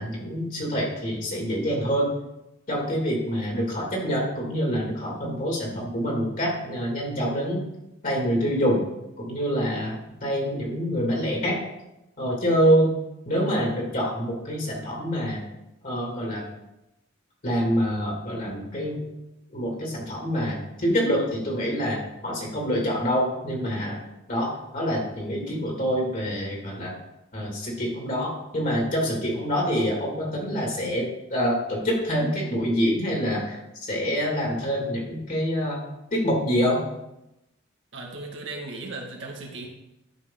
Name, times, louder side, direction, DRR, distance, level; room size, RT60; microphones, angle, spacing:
voice 1, 0.0-2.1 2.7-7.6 8.0-8.8 9.2-10.0 10.2-11.6 12.2-13.0 13.3-15.4 15.8-16.4 17.4-19.0 19.5-24.0 24.3-26.9 27.3-35.8 36.1-36.8, equal, 45° left, -2 dB, 2.4 m, -26 dB
voice 2, 37.9-39.7, right 2 dB, 65° right, 1 dB, 1.8 m, -36 dB
12.0 x 5.4 x 3.8 m, 0.89 s
head